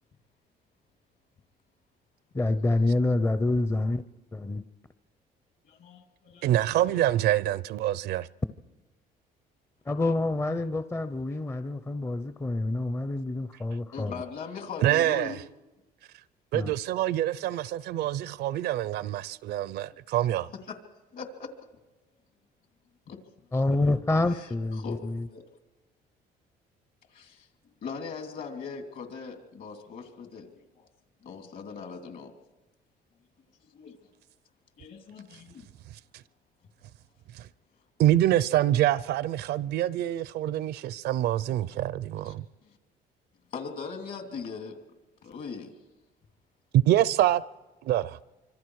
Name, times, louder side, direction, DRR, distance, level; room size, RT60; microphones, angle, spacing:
voice 1, 2.3-4.0 4.3-4.6 9.9-14.1 16.5-16.7 23.5-25.3, left 2 dB, 15° left, 0.6 m, -27 dB
voice 2, 5.7-7.0 13.9-15.4 20.7-20.8 21.1-21.5 23.1-23.2 24.3-24.5 24.8-25.0 25.3-25.4 27.1-27.5 27.8-30.9 31.2-32.3 33.7-34.0 34.8-35.7 42.2-42.3 43.5-44.8 45.2-45.7, left 5 dB, 60° left, 2.9 m, -40 dB
voice 3, 6.4-8.3 14.8-15.4 16.5-20.5 37.3-37.4 38.0-42.4 46.7-47.4 47.8-48.2, right 13 dB, 75° right, 0.6 m, -25 dB
25.5 x 25.5 x 4.8 m
cardioid pair, 110°, 17 cm